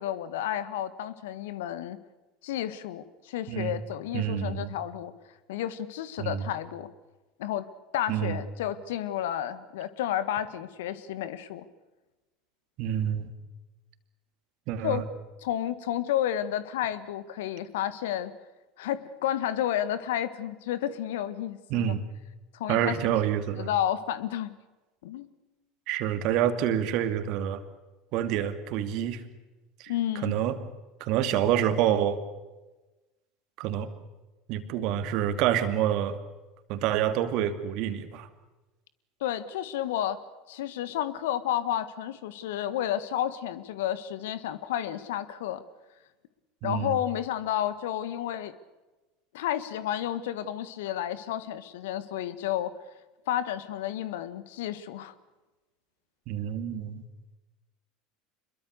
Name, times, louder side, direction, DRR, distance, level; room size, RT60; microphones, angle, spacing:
voice 1, 0.0-2.0 2.4-5.1 5.5-6.9 7.4-7.7 7.9-11.6 14.8-15.0 15.4-18.3 18.8-21.9 22.5-23.1 23.6-24.5 25.0-25.3 29.9-30.3 39.2-40.2 40.5-45.6 46.6-48.5 49.3-52.7 53.3-55.1, left 11 dB, 70° left, 15 dB, 1.5 m, -31 dB
voice 2, 3.5-3.8 4.1-4.8 6.2-6.5 8.1-8.4 12.8-13.3 14.7-15.0 21.7-22.0 22.7-23.7 25.9-27.6 28.1-29.2 29.8-29.9 30.2-30.6 31.0-32.2 33.6-33.9 34.5-36.2 36.7-38.3 46.6-47.0 56.3-57.0, right 10 dB, 55° right, 10 dB, 2.4 m, -27 dB
26.0 x 22.5 x 6.7 m, 1.1 s
figure-of-eight pair, 75°, 0 cm